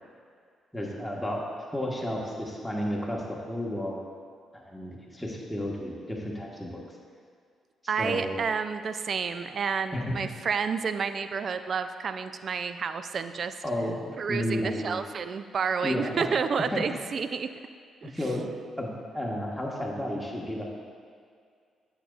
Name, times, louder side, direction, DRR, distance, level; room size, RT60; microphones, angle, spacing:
voice 1, 0.7-1.4 1.7-4.0 4.5-6.8 8.0-8.4 9.9-10.2 13.6-14.0 14.3-15.0 15.8-16.3 16.7-16.8 18.1-18.4 18.8-18.9 19.1-20.6, left 1 dB, 5° left, -4 dB, 1.6 m, -32 dB
voice 2, 7.9-13.5 14.2-17.5 18.0-18.1, right 6 dB, 55° right, 10 dB, 0.3 m, -30 dB
8.6 x 6.8 x 2.5 m, 2.2 s
supercardioid pair, 65°, 0 cm